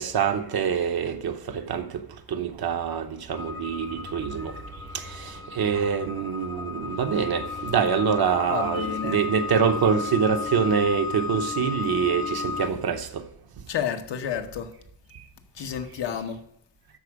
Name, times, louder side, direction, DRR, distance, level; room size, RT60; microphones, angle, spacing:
voice 1, 0.0-1.9 2.3-4.5 4.9-13.2, right 7 dB, 60° right, 1.0 m, -25 dB
sound 1, 3.3-12.7, left 5 dB, 10° left, 0.6 m, -34 dB
voice 2, 8.5-9.2 13.7-14.7 15.5-16.4, left 8 dB, 80° left, 1.0 m, -30 dB
12.5 x 4.4 x 4.8 m
wide cardioid pair, 160°, 42 cm